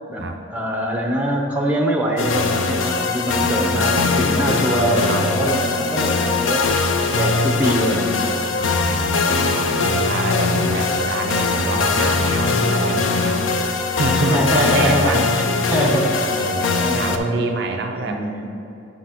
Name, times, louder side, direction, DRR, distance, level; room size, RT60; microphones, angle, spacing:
voice 1, 0.1-8.2 8.5-8.8 14.1-15.4 15.7-16.2 16.8-17.4 17.9-18.5, right 1 dB, 10° right, 0 dB, 0.6 m, -24 dB
sound 1, 2.2-17.2, left 4 dB, 65° left, 0.5 m, -21 dB
voice 2, 3.4-4.4 4.8-5.2 8.6-13.5 14.0-15.3 15.8-18.2, right 3 dB, 55° right, 4 dB, 0.5 m, -26 dB
9.8 x 6.4 x 2.9 m, 2.7 s
head